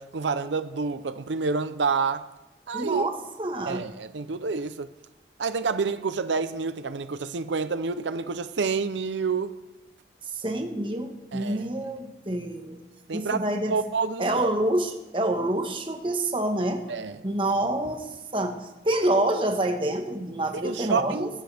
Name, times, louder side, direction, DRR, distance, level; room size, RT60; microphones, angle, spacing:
voice 1, 0.0-2.3 2.7-3.1 3.7-4.9 5.4-9.6 11.3-11.6 13.1-14.5 16.9-17.2 20.5-21.3, right 4 dB, 90° right, 0.6 m, -28 dB
voice 2, 2.7-3.9 10.3-12.8 13.1-13.8 14.2-16.8 17.2-21.3, right 1 dB, 30° right, 1.3 m, -27 dB
21.5 x 13.0 x 3.4 m
head